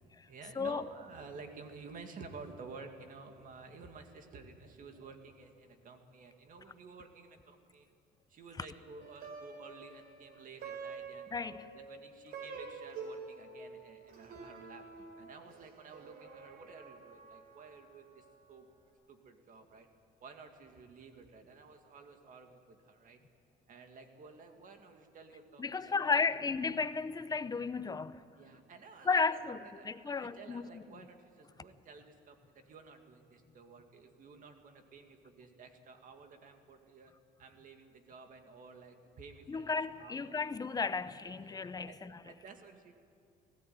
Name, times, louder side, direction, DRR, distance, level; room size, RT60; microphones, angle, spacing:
voice 1, 0.0-7.9 8.3-18.7 19.1-19.9 20.2-23.2 23.7-26.2 28.4-37.1 37.4-40.5 41.3-41.6 41.9-42.9, right 4 dB, 50° right, 2.2 m, -53 dB
Plucked string instrument, 9.0-18.4, right 4 dB, 70° right, 4.1 m, -48 dB
voice 2, 11.3-11.7 25.6-28.2 29.0-30.8 39.5-42.2, left 4 dB, 20° left, 0.7 m, -34 dB
20.0 x 16.0 x 9.4 m
cardioid pair, 110°, 17 cm